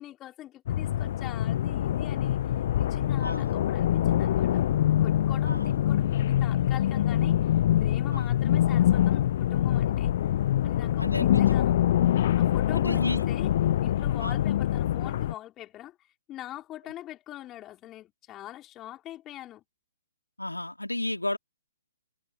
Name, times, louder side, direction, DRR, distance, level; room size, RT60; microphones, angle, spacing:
voice 1, 0.0-2.4 2.8-4.6 5.0-7.4 7.8-10.1 10.6-11.7 12.4-13.5 13.8-19.6, left 14 dB, 20° left, 4.3 m, -43 dB
sound 1, 0.7-15.3, left 12 dB, 45° left, 0.8 m, -25 dB
voice 2, 3.2-3.5 5.4-5.7 8.1-8.3 11.0-11.7 12.7-13.2 14.2-14.4 20.4-21.4, left 1 dB, 85° left, 2.6 m, -32 dB
figure-of-eight pair, 125°, 0 cm